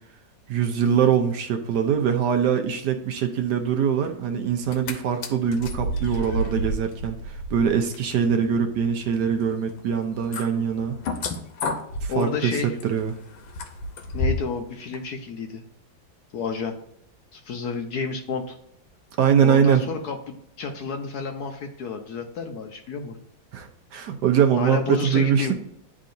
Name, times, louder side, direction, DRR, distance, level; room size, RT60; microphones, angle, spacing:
voice 1, 0.5-11.0 12.0-13.1 19.2-19.8 23.5-25.5, right 8 dB, 70° right, 6 dB, 1.1 m, -23 dB
sound 1, 4.5-4.9 5.2-14.6 14.9-15.0, left 1 dB, 85° left, 1.6 m, -31 dB
voice 2, 10.5-11.1 12.1-12.8 14.1-15.6 16.3-16.7 17.3-18.6 19.4-23.2 24.6-25.5, left 4 dB, 65° left, 5 dB, 1.0 m, -30 dB
10.5 x 3.7 x 2.6 m, 0.75 s
omnidirectional pair, 2.1 m